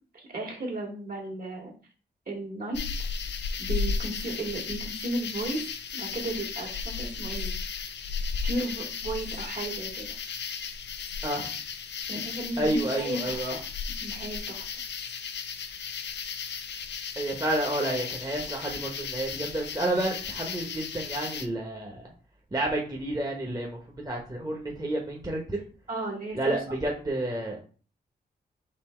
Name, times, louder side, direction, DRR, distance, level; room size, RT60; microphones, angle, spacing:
voice 1, 0.1-1.7 2.3-2.8 3.6-5.6 5.9-7.5 8.4-10.1 12.1-13.6 13.9-14.7 25.9-26.5, right 2 dB, 50° right, -1 dB, 2.3 m, -34 dB
sound 1, 2.7-21.5, left 5 dB, 70° left, 0.6 m, -35 dB
voice 2, 12.6-13.6 17.2-22.1 22.5-25.6 26.3-27.6, right 1 dB, 20° right, -1 dB, 1.3 m, -30 dB
4.2 x 2.8 x 4.4 m, 0.40 s
supercardioid pair, 45°, 19 cm